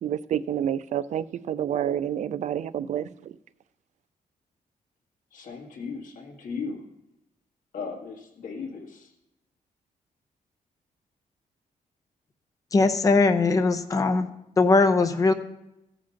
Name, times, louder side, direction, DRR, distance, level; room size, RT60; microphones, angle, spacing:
voice 1, 0.0-3.3, right 10 dB, 60° right, 17 dB, 0.4 m, -29 dB
voice 2, 5.3-6.8 7.7-9.1, left 5 dB, 70° left, 1 dB, 1.9 m, -36 dB
voice 3, 12.7-14.3 14.6-15.3, left 3 dB, 25° left, 7 dB, 0.6 m, -20 dB
15.0 x 5.1 x 5.7 m, 0.89 s
wide cardioid pair, 160°, 14 cm